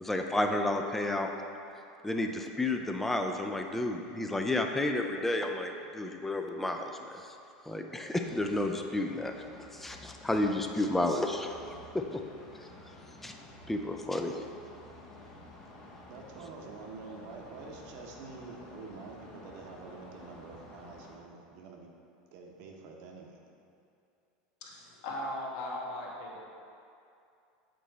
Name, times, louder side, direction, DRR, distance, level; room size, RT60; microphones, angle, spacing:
voice 1, 0.0-1.3 2.0-7.3 7.7-11.6 11.9-12.2 13.2-13.3 13.7-14.4, left 2 dB, 5° left, 4 dB, 0.3 m, -31 dB
sound 1, 8.2-21.2, left 2 dB, 35° left, 0.8 m, -52 dB
voice 2, 16.1-21.9 22.3-23.4, right 4 dB, 55° right, 1 dB, 0.8 m, -47 dB
voice 3, 24.6-26.4, left 1 dB, 65° left, -3 dB, 1.2 m, -38 dB
7.9 x 3.1 x 4.0 m, 2.6 s
supercardioid pair, 145°, 4 cm